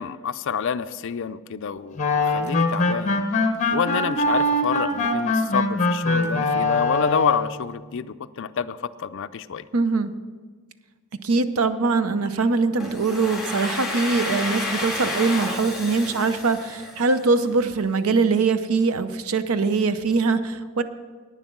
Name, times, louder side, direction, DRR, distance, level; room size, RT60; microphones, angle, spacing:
voice 1, 0.0-3.2 3.7-9.6, left 7 dB, 55° left, 13 dB, 0.4 m, -28 dB
sound 1, 2.0-7.5, left 2 dB, 35° left, 1.0 m, -22 dB
voice 2, 9.7-10.1 11.2-20.8, right 4 dB, 75° right, 12 dB, 0.6 m, -22 dB
Domestic sounds home sounds, 12.8-17.6, left 2 dB, ahead, 2.0 m, -31 dB
11.0 x 9.4 x 6.0 m, 1.5 s
head